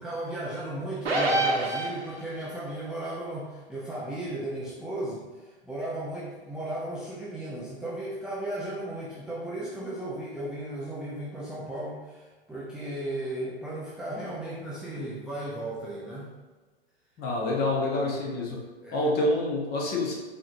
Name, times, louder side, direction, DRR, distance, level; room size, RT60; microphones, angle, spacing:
voice 1, 0.0-16.3 18.0-18.4 18.8-19.1, right 1 dB, ahead, -8 dB, 0.5 m, -35 dB
sound 1, 1.0-2.4, right 2 dB, 75° right, 1.2 m, -26 dB
voice 2, 17.2-18.6 18.9-20.1, left 1 dB, 30° left, -2 dB, 1.1 m, -27 dB
4.8 x 3.1 x 2.6 m, 1.3 s
hypercardioid pair, 110°, 31 cm